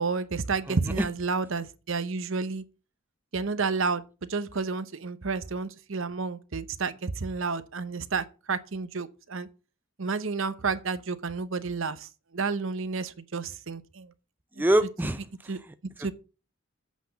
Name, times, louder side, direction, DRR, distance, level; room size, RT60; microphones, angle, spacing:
voice 1, 0.0-2.6 3.3-4.0 4.3-9.5 10.0-14.1 14.6-14.7 15.5-15.6 16.0-16.1, right 4 dB, 65° right, 0.9 m, -30 dB
voice 2, 0.6-1.1 14.6-16.1, right 1 dB, 10° right, 0.4 m, -27 dB
8.3 x 5.9 x 7.3 m
head